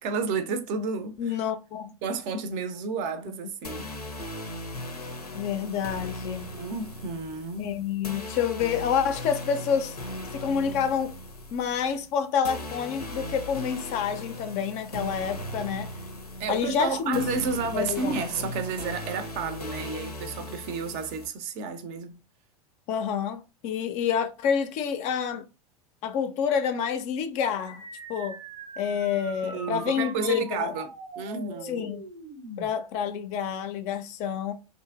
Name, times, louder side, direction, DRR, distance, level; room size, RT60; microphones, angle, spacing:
voice 1, 0.0-1.4 2.0-3.9 6.5-7.7 16.4-22.2 29.4-31.9, right 5 dB, 40° right, 0.5 m, -31 dB
voice 2, 1.2-1.9 5.3-6.5 7.6-10.0 10.3-11.1 11.5-15.9 16.5-17.3 17.5-18.1 22.9-25.4 26.0-27.8 28.1-28.4 28.8-30.7 31.6-32.0 32.6-34.5, left 7 dB, 35° left, 0.4 m, -28 dB
sound 1, 3.6-21.3, left 1 dB, 90° left, 0.5 m, -38 dB
sound 2, 27.7-32.7, right 3 dB, 75° right, 0.7 m, -42 dB
2.9 x 2.6 x 2.3 m
figure-of-eight pair, 85°, 19 cm